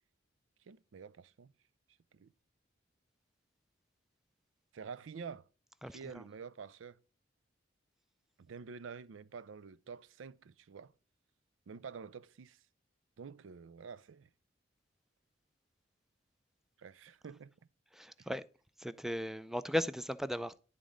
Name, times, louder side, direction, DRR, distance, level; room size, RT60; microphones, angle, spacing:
voice 1, 0.7-1.5 2.1-2.3 4.7-5.5 5.9-7.0 8.4-10.9 11.7-12.6 13.2-14.3 16.8-17.5 18.2-18.3, right 6 dB, 85° right, 0.4 m, -48 dB
voice 2, 5.8-6.1 17.9-18.4 18.8-20.6, equal, ahead, 0.3 m, -36 dB
11.0 x 3.7 x 5.1 m
head